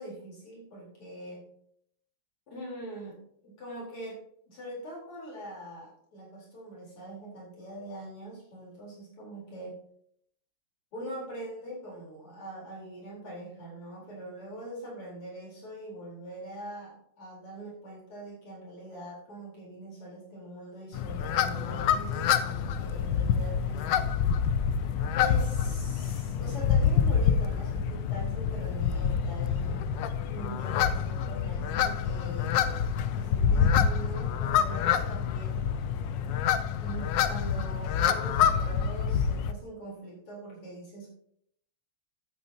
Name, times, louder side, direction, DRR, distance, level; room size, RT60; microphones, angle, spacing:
voice 1, 0.0-1.4 2.5-4.2 4.5-9.8 10.9-24.1 25.0-32.8 33.1-35.7 36.8-41.1, right 1 dB, 85° left, -4 dB, 5.1 m, -42 dB
sound 1, 20.9-39.5, left 7 dB, 70° left, 1.2 m, -27 dB
13.0 x 8.6 x 2.9 m, 0.69 s
omnidirectional pair, 2.4 m